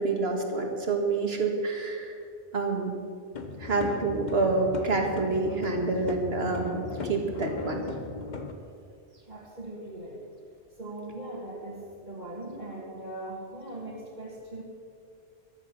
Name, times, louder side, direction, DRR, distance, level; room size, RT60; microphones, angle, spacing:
voice 1, 0.0-2.1 2.5-3.0 3.6-7.8, right 3 dB, 60° right, 2 dB, 2.0 m, -28 dB
sound 1, 3.3-8.5, left 4 dB, 40° left, 1.1 m, -37 dB
voice 2, 9.3-10.2 10.8-14.6, right 1 dB, 40° right, -5 dB, 2.0 m, -40 dB
15.0 x 12.0 x 5.9 m, 2.3 s
omnidirectional pair, 1.2 m